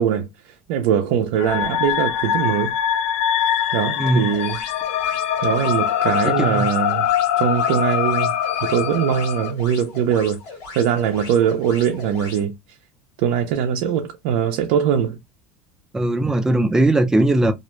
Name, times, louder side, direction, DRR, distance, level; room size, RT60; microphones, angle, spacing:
voice 1, 0.0-2.7 3.7-4.6 5.4-7.1 7.4-8.3 8.7-10.4 10.8-12.5 13.2-15.2, right 8 dB, 75° right, 0.4 m, -21 dB
sound 1, 1.4-9.5, left 9 dB, 85° left, 0.4 m, -23 dB
voice 2, 4.0-4.3 6.2-6.7 15.9-17.5, right 1 dB, 10° right, 0.4 m, -19 dB
sound 2, 4.3-12.4, left 3 dB, 65° left, 1.2 m, -38 dB
2.4 x 2.1 x 3.0 m
supercardioid pair, 120°, 6 cm